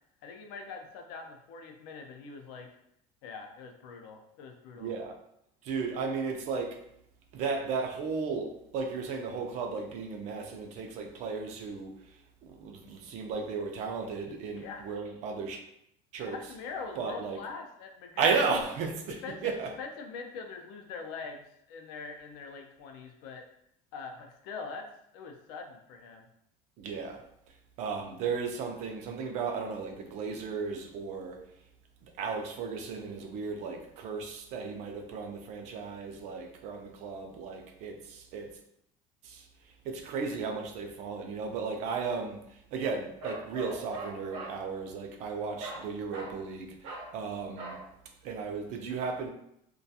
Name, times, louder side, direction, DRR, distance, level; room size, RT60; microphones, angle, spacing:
voice 1, 0.2-2.7 3.2-4.9 14.6-14.8 16.2-18.3 19.1-23.5 23.9-26.3, left 4 dB, 70° left, 4 dB, 0.4 m, -43 dB
voice 2, 4.8-5.1 5.6-6.8 7.3-11.9 12.4-15.6 16.1-16.4 17.0-17.4 18.2-19.1 19.4-19.7 26.8-27.2 27.8-31.4 32.2-38.5 39.2-39.4 39.9-42.4 42.7-46.7 47.1-47.7 48.2-49.3, right 5 dB, 45° right, 3 dB, 0.4 m, -34 dB
Bark, 43.2-44.6 45.6-45.9 46.1-46.4 46.8-47.1 47.6-47.8, right 2 dB, 80° right, 0.8 m, -41 dB
2.3 x 2.2 x 2.6 m, 0.74 s
cardioid pair, 170°, 16 cm